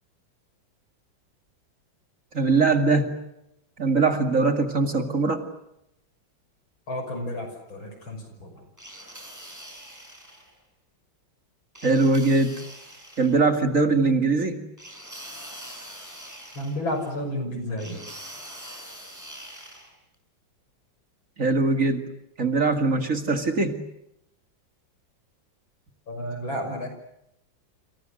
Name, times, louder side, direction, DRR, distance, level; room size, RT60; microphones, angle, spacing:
voice 1, 2.3-3.1 3.8-5.4 11.8-12.6 13.2-14.6 21.4-22.0 22.4-23.8, right 3 dB, 40° right, 6 dB, 2.6 m, -21 dB
voice 2, 6.9-8.6 16.6-18.0 26.1-26.9, left 1 dB, 75° left, 6 dB, 6.9 m, -31 dB
sound 1, 8.8-10.5 11.7-13.4 14.8-17.1 17.8-19.9, equal, 10° right, 7.5 m, -43 dB
30.0 x 26.5 x 6.6 m, 0.83 s
omnidirectional pair, 2.1 m